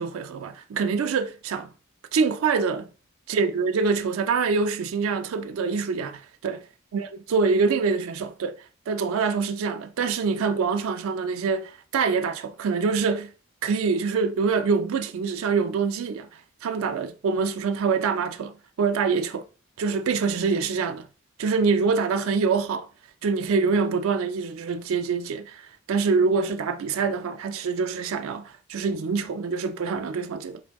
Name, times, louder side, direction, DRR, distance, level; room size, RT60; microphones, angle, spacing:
voice 1, 0.0-1.7 2.1-2.9 3.3-6.6 6.9-13.3 13.6-19.4 19.8-21.1 21.4-22.9 23.2-25.6 25.9-30.6, right 5 dB, 80° right, 0.4 m, -25 dB
4.5 x 2.6 x 3.5 m
head